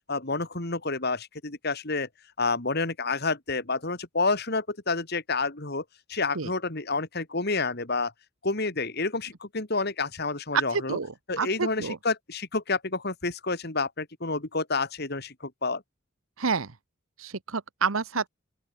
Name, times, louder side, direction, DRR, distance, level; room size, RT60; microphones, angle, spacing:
voice 1, 0.1-2.1 2.4-8.1 8.4-11.0 11.3-15.8, left 3 dB, 50° left, 2.8 m, -29 dB
voice 2, 10.7-12.0 16.4-16.7 17.2-18.3, right 5 dB, 85° right, 1.1 m, -29 dB
open air
head